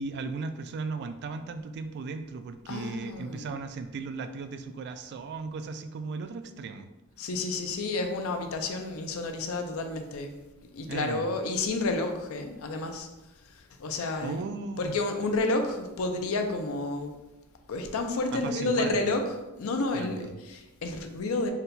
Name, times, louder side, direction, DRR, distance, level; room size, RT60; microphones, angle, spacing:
voice 1, 0.0-6.9 10.9-11.3 14.2-15.0 18.3-19.2 19.9-20.3, right 4 dB, 50° right, 9 dB, 0.3 m, -36 dB
voice 2, 2.7-3.6 7.2-10.3 10.7-13.1 13.5-14.5 14.8-17.2 17.7-21.5, left 2 dB, 70° left, 5 dB, 0.5 m, -30 dB
4.1 x 2.2 x 3.9 m, 1.0 s
head